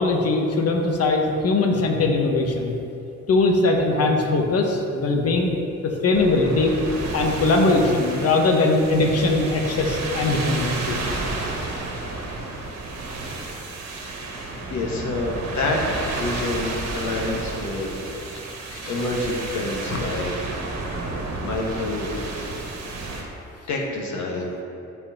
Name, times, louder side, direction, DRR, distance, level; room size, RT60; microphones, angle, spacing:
voice 1, 0.0-2.8 3.3-5.5 5.8-6.7 7.1-11.0 18.7-18.9 19.9-20.0, left 2 dB, 55° left, 2 dB, 1.1 m, -21 dB
sound 1, 6.1-23.2, right 2 dB, 60° right, 1.4 m, -31 dB
voice 2, 14.7-20.6 21.4-22.1 22.4-22.6 23.7-24.5, left 2 dB, 70° left, -1 dB, 1.4 m, -28 dB
12.5 x 4.5 x 2.8 m, 2.7 s
cardioid pair, 90°, 30 cm